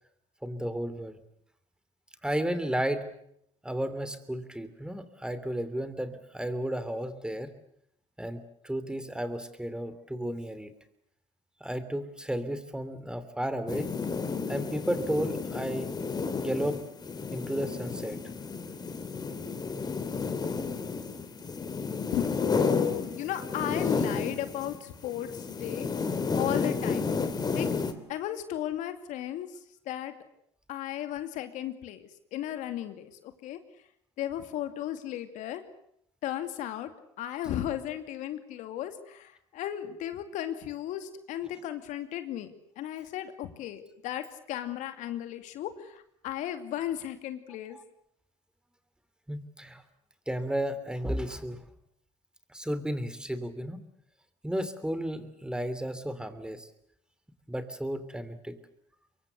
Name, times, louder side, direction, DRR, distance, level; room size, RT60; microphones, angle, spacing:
voice 1, 0.4-1.2 2.2-3.1 3.6-7.5 8.2-10.7 11.6-13.9 14.5-15.9 16.4-16.8 17.3-18.2 47.7-47.8 49.3-49.8 50.3-51.7 52.5-53.8 54.4-56.7 57.5-58.6, right 1 dB, 5° right, 12 dB, 3.0 m, -33 dB
sound 1, 13.7-24.8 25.0-27.9, left 4 dB, 30° left, 3.0 m, -32 dB
voice 2, 22.1-25.9 26.4-27.1 27.5-27.7 28.1-29.5 29.9-30.1 30.7-33.6 34.2-35.6 36.2-36.9 37.2-47.8, left 12 dB, 65° left, 8 dB, 2.5 m, -35 dB
25.0 x 23.0 x 8.1 m, 0.73 s
hypercardioid pair, 75°, 14 cm